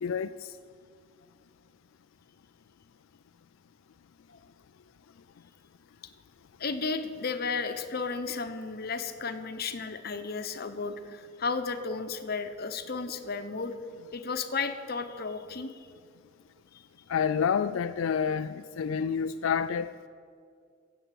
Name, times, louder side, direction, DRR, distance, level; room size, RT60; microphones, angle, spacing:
voice 1, 0.0-0.5 17.1-19.9, left 7 dB, 85° left, 0.4 m, -28 dB
voice 2, 6.6-13.7 14.1-15.9 16.7-16.8, left 4 dB, 50° left, 0.9 m, -33 dB
15.0 x 8.0 x 8.3 m
head